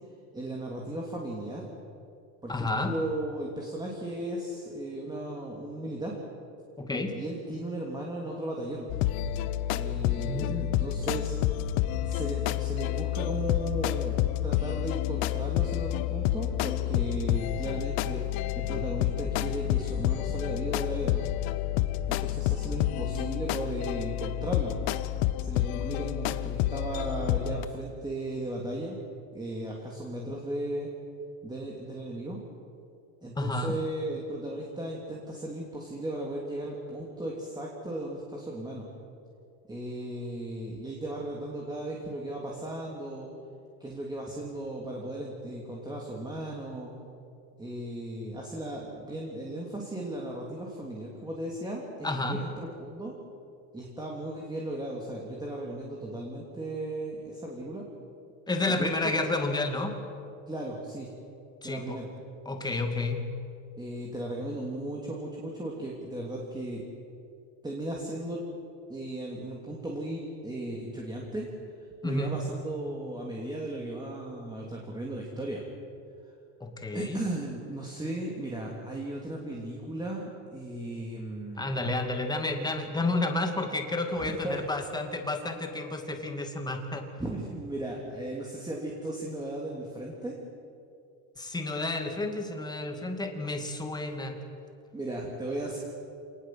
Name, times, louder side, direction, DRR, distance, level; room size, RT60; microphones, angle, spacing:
voice 1, 0.3-1.6 2.4-6.2 7.1-8.9 9.7-11.4 12.0-18.2 18.5-21.3 22.1-24.8 25.4-29.0 29.3-30.9 31.4-32.4 33.2-38.9 39.7-43.3 43.8-46.9 47.6-53.1 53.7-57.9 58.7-59.3 60.5-61.1 61.6-62.1 63.8-66.8 67.6-68.4 68.9-71.5 72.0-75.6 76.9-81.9 84.1-84.6 87.2-90.4 94.9-95.8, right 1 dB, 10° right, -2 dB, 3.1 m, -36 dB
voice 2, 2.5-2.9 6.8-7.1 10.2-10.8 33.4-33.7 52.0-52.4 58.5-59.9 61.6-62.0 62.5-63.2 72.0-72.4 76.6-77.2 81.6-87.1 91.4-94.4, left 2 dB, 10° left, 4 dB, 2.5 m, -31 dB
sound 1, 8.9-27.7, left 14 dB, 70° left, 1.0 m, -29 dB
27.5 x 19.5 x 7.8 m, 2.6 s
cardioid pair, 140°, 38 cm